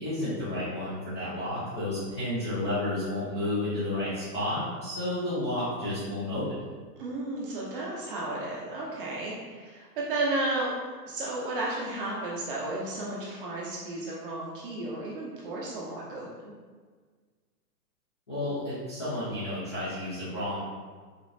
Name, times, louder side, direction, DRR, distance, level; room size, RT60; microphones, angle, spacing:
voice 1, 0.0-6.6 18.3-20.6, left 1 dB, 20° left, -12 dB, 0.3 m, -31 dB
voice 2, 7.0-10.7 11.1-16.5, right 2 dB, 35° right, -4 dB, 0.6 m, -33 dB
5.0 x 2.4 x 2.6 m, 1.5 s
hypercardioid pair, 145°, 49 cm